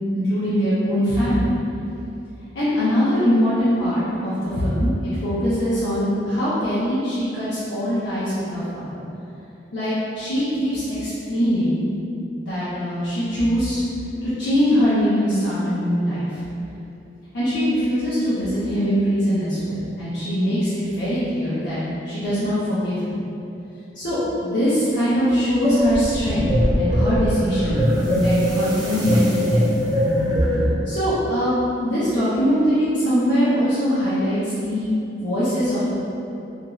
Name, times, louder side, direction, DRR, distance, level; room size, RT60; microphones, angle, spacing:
voice 1, 0.1-1.5 2.5-4.9 5.2-9.0 9.7-11.8 12.4-13.8 14.4-16.4 17.3-21.8 22.0-23.2 23.9-26.5 26.8-29.6 30.9-31.5 31.8-35.9, equal, 65° left, -12 dB, 0.6 m, -22 dB
sound 1, 25.6-30.8, equal, 25° right, 0.4 m, -21 dB
2.5 x 2.3 x 3.0 m, 2.8 s
head